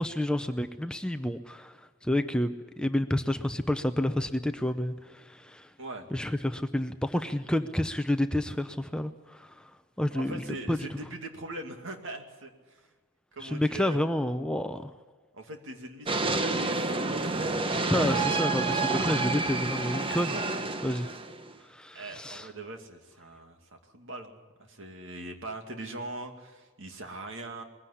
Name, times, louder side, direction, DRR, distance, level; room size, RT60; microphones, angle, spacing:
voice 1, 0.0-5.7 6.1-9.7 10.0-10.8 13.4-14.9 17.7-20.4 20.8-21.1 21.7-22.5, left 1 dB, 5° left, 8 dB, 0.6 m, -30 dB
voice 2, 10.1-12.9 13.3-14.0 15.3-17.5 21.9-27.6, right 2 dB, 60° right, 4 dB, 2.4 m, -41 dB
sound 1, 16.1-21.5, right 3 dB, 25° right, 0.9 m, -29 dB
21.0 x 16.0 x 9.9 m, 1.3 s
head